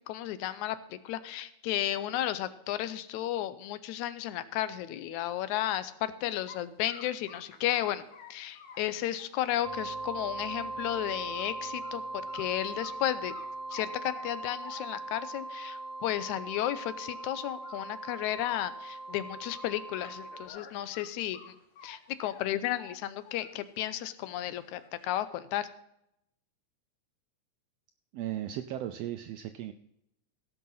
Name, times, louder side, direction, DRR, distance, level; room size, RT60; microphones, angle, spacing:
voice 1, 0.1-8.0 8.3-13.3 13.7-21.4 21.8-25.7, left 13 dB, 90° left, 14 dB, 2.1 m, -33 dB
sound 1, 6.5-6.6 6.9-10.7 11.0-11.5 11.8-11.9 12.3-13.0 13.3-15.2 15.9-16.0 16.3-16.4 16.7-16.8 17.1-17.4 17.6-19.2 19.5-22.0 22.2-24.1 24.5-25.2, left 6 dB, 65° left, 2.4 m, -51 dB
sound 2, 9.6-20.5, right 2 dB, 55° right, 1.4 m, -40 dB
voice 2, 28.1-29.7, right 12 dB, 85° right, 8 dB, 1.4 m, -36 dB
16.5 x 5.6 x 5.5 m, 0.79 s
omnidirectional pair, 3.4 m